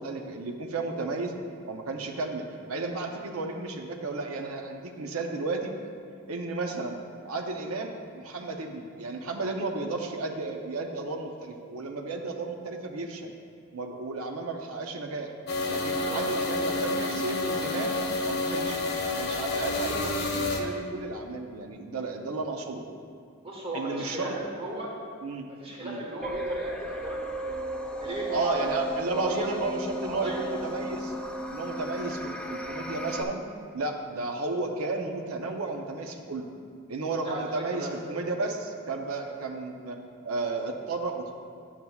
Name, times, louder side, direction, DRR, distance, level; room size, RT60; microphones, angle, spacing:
voice 1, 0.0-1.3 1.7-5.7 6.3-7.0 7.2-13.3 13.7-15.3 15.7-18.0 18.2-18.8 19.1-22.9 23.7-24.4 25.2-25.5 25.8-26.0 28.3-31.1 31.5-33.4 33.7-36.5 36.9-41.3, right 3 dB, 80° right, 2 dB, 0.6 m, -33 dB
sound 1, 15.5-20.6, left 2 dB, 50° left, 0.8 m, -29 dB
voice 2, 23.4-24.9 25.5-27.5 27.9-28.7 29.1-29.5 30.0-30.5 37.2-38.2, right 1 dB, 25° right, -4 dB, 1.3 m, -36 dB
sound 2, 26.2-33.2, right 1 dB, 5° left, 0.3 m, -35 dB
10.5 x 7.3 x 2.3 m, 2.2 s
head